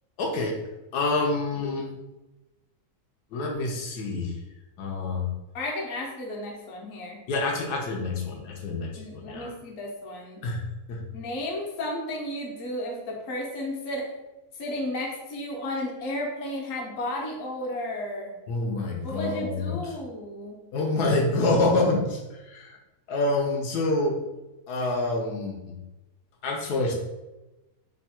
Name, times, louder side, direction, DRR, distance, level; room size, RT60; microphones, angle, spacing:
voice 1, 0.2-0.6 0.9-1.9 3.3-4.3 4.8-5.3 7.3-9.5 10.4-10.6 10.9-11.0 18.5-20.0 20.7-22.8 23.1-24.2 24.7-25.8 26.4-26.9, left 2 dB, 85° left, -1 dB, 1.2 m, -27 dB
voice 2, 5.5-7.2 9.0-10.4 11.1-14.1 14.6-18.3 19.0-20.6, left 1 dB, 60° left, -2 dB, 1.1 m, -33 dB
3.1 x 2.3 x 4.2 m, 1.0 s
omnidirectional pair, 1.7 m